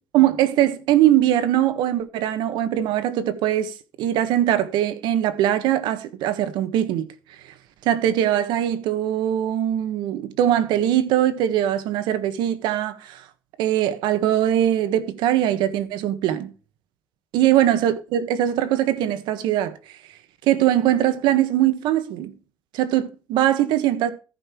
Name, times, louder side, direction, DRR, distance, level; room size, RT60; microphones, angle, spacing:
voice 1, 0.1-3.7 4.0-7.1 7.8-13.2 13.6-16.5 17.3-19.7 20.5-22.3 22.7-24.1, right 12 dB, 70° right, 1.5 m, -21 dB
14.5 x 5.5 x 4.5 m
cardioid pair, 175°, 8 cm